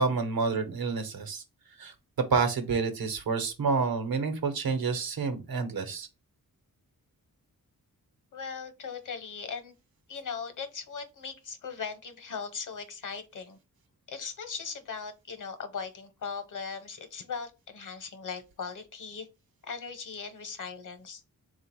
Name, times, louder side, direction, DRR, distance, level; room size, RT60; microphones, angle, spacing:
voice 1, 0.0-1.4 1.8-1.9 2.3-6.1, right 4 dB, 80° right, 1.0 m, -28 dB
voice 2, 8.3-9.8 10.1-13.6 14.1-19.3 19.6-21.2, left 5 dB, 60° left, 0.9 m, -39 dB
3.6 x 2.4 x 4.5 m
wide cardioid pair, 100°, 35 cm